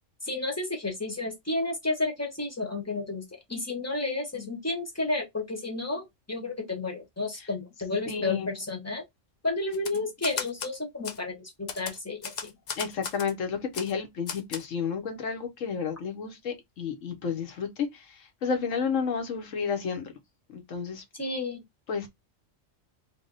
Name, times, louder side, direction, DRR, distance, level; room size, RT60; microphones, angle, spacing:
voice 1, 0.2-3.2 3.5-9.0 9.4-12.3 21.2-21.6, left 2 dB, 15° left, 1.0 m, -31 dB
voice 2, 8.1-8.5 12.8-18.0 18.4-20.0 20.5-21.0 21.9-22.1, left 6 dB, 85° left, 1.3 m, -31 dB
Typewriter, 9.7-10.7 11.0-11.2 11.7-13.3 13.7-13.9 14.3-14.6, left 6 dB, 55° left, 0.5 m, -36 dB
3.4 x 2.3 x 3.9 m
omnidirectional pair, 1.3 m